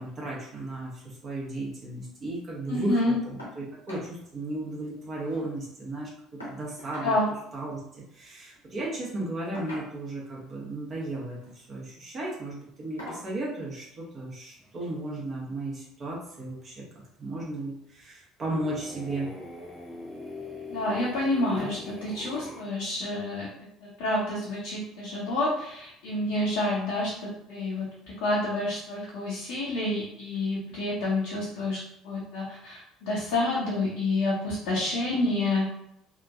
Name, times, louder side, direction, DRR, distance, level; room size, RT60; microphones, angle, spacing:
voice 1, 0.0-7.2 7.5-7.8 8.1-16.8 17.2-19.3, right 2 dB, 35° right, -4 dB, 0.8 m, -35 dB
voice 2, 2.7-3.1 7.0-7.3 20.7-23.5 23.8-31.8 32.0-35.7, left 2 dB, 65° left, -6 dB, 0.6 m, -28 dB
sound 1, 3.4-3.6 3.9-4.1 4.5-4.6 4.8-5.5 6.4-7.1 8.4-8.6 9.5-10.2 11.2-11.5 12.0-12.2 13.0-13.3 14.6-14.7 15.2-15.3, left 1 dB, 85° left, 1.0 m, -43 dB
sound 2, 14.6-14.7 18.4-22.6, left 2 dB, ahead, 0.6 m, -42 dB
3.0 x 2.5 x 2.4 m, 0.76 s
figure-of-eight pair, 60°, 0 cm